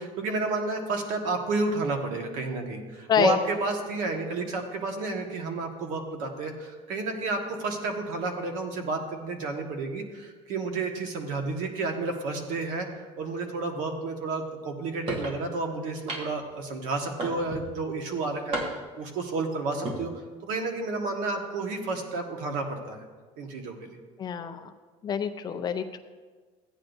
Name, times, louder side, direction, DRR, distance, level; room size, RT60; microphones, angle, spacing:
voice 1, 0.0-18.6 19.0-20.1 20.4-23.0 23.4-24.0, right 3 dB, 80° right, 3 dB, 1.5 m, -31 dB
sound 1, 15.1-15.4 16.1-16.5 17.2-17.7 18.5-19.0 19.7-20.0, right 1 dB, 45° right, 1.5 m, -33 dB
voice 2, 24.2-24.7 25.0-26.0, left 7 dB, 30° left, 7 dB, 0.5 m, -27 dB
15.0 x 9.7 x 2.7 m, 1.4 s
cardioid pair, 155°, 13 cm